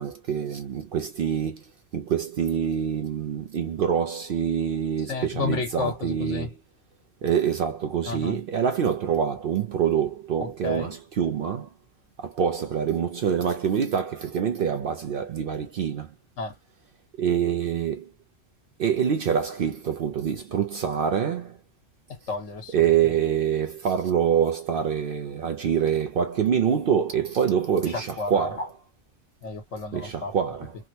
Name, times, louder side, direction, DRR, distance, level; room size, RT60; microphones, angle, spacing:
voice 1, 0.0-1.7 1.9-6.6 7.2-11.7 12.2-16.1 17.2-18.1 18.8-21.6 22.7-28.6 29.9-30.7, right 8 dB, 60° right, 0.6 m, -25 dB
voice 2, 5.1-6.5 8.1-8.4 10.4-10.9 16.4-16.5 22.1-22.9 28.2-28.7 29.4-30.3, left 4 dB, 80° left, 1.5 m, -32 dB
3.5 x 2.1 x 2.7 m
omnidirectional pair, 1.3 m